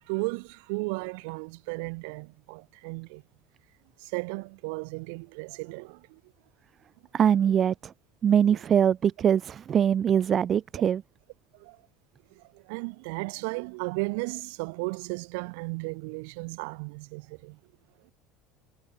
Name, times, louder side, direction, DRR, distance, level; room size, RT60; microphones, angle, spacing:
voice 1, 0.1-3.2 4.0-6.2 8.5-8.6 11.5-11.8 12.3-17.6, right 31 dB, 80° right, 1.9 m, -35 dB
voice 2, 7.1-7.9 8.2-11.0, right 8 dB, 30° right, 0.7 m, -23 dB
cardioid pair, 165°, 0 cm